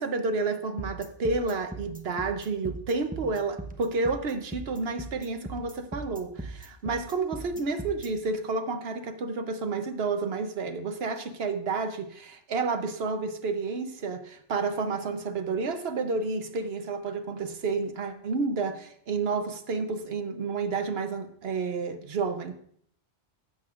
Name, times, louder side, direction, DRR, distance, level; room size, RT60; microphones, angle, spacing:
voice 1, 0.0-22.5, right 4 dB, 65° right, 1.1 m, -30 dB
sound 1, 0.8-8.1, right 2 dB, 10° right, 0.7 m, -39 dB
15.5 x 7.7 x 2.5 m
omnidirectional pair, 1.1 m